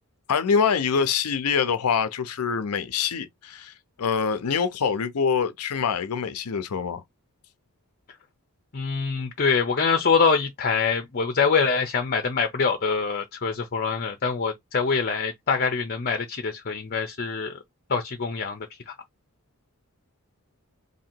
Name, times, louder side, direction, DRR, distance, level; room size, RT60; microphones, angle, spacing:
voice 1, 0.3-3.7 4.0-7.0, left 6 dB, 85° left, 0.6 m, -25 dB
voice 2, 8.7-17.6 17.9-19.0, left 5 dB, 45° left, 0.6 m, -24 dB
2.9 x 2.8 x 4.3 m
head